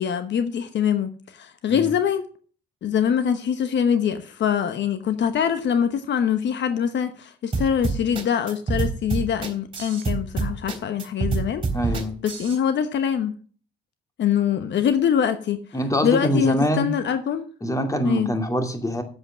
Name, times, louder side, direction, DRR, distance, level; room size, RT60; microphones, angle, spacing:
voice 1, 0.0-2.3 2.8-11.6 12.2-13.3 14.2-15.6 16.0-17.5 18.0-18.3, left 8 dB, 65° left, 1.1 m, -23 dB
sound 1, 7.5-12.6, right 4 dB, 25° right, 3.3 m, -26 dB
voice 2, 11.7-12.2 15.7-16.9 17.6-19.0, equal, 15° left, 2.4 m, -24 dB
8.1 x 7.8 x 7.3 m
cardioid pair, 90°, 20 cm